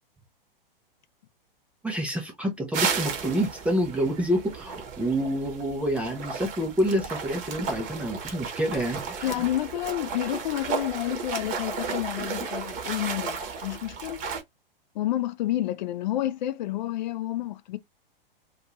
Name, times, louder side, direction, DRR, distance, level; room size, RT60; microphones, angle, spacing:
voice 1, 1.8-9.5, equal, 5° right, 0.4 m, -28 dB
sound 1, 2.7-14.4, right 5 dB, 25° right, 0.8 m, -34 dB
voice 2, 9.2-14.2 14.9-17.8, left 13 dB, 50° left, 0.5 m, -29 dB
2.5 x 2.3 x 2.9 m
figure-of-eight pair, 110°, 29 cm